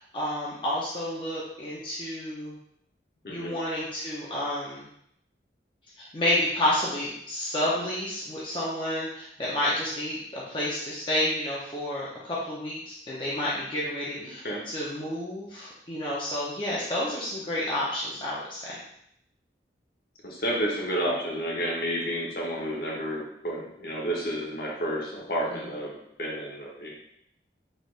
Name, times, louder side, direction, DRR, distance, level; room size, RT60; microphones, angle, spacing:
voice 1, 0.0-2.6 3.3-4.9 6.0-18.8 25.5-25.6, left 1 dB, 30° left, -7 dB, 0.6 m, -30 dB
voice 2, 14.2-14.6 20.2-26.9, equal, 55° left, -3 dB, 1.0 m, -31 dB
4.1 x 3.3 x 2.5 m, 0.72 s
head